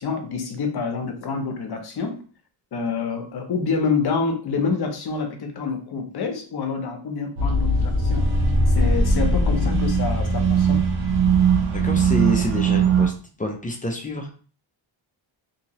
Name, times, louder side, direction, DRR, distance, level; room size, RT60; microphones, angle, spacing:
voice 1, 0.0-2.2 2.7-8.3 8.7-10.8, left 4 dB, 50° left, 5 dB, 0.7 m, -27 dB
sound 1, 7.4-13.1, right 3 dB, 90° right, 0.9 m, -20 dB
voice 2, 11.7-13.1 13.4-14.3, equal, 20° left, 2 dB, 0.3 m, -27 dB
2.8 x 2.8 x 2.8 m, 0.41 s
wide cardioid pair, 145°, 49 cm